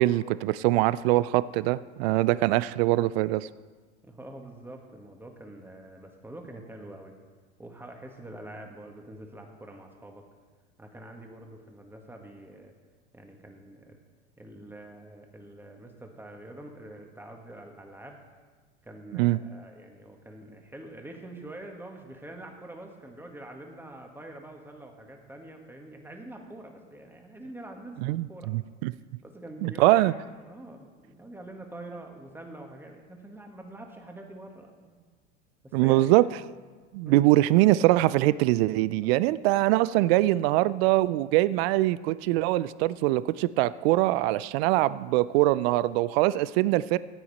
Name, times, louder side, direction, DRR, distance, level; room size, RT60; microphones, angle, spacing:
voice 1, 0.0-3.5 19.2-19.4 28.0-28.9 29.6-30.1 35.7-36.3 36.9-47.0, right 17 dB, 60° right, 18 dB, 0.5 m, -23 dB
voice 2, 4.0-7.2 7.6-10.2 10.8-12.7 13.1-14.0 14.4-18.2 18.8-28.6 29.2-35.0 35.6-36.1 37.1-37.2 39.0-39.1, right 1 dB, 5° right, 2 dB, 1.8 m, -45 dB
15.0 x 8.5 x 4.2 m, 1.4 s
hypercardioid pair, 95°, 35 cm